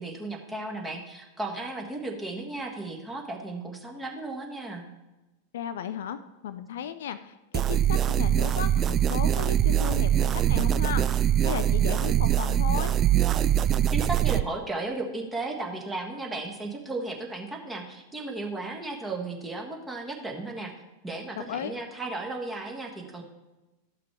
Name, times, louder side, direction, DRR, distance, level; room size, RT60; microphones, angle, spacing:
voice 1, 0.0-4.8 13.9-20.7 21.0-23.2, right 2 dB, 10° right, 0 dB, 1.6 m, -35 dB
voice 2, 5.5-12.9 21.4-21.8, left 9 dB, 60° left, 11 dB, 0.4 m, -35 dB
sound 1, 7.5-14.4, right 10 dB, 30° right, 0.3 m, -23 dB
12.5 x 5.9 x 4.7 m, 1.1 s
figure-of-eight pair, 90°, 0 cm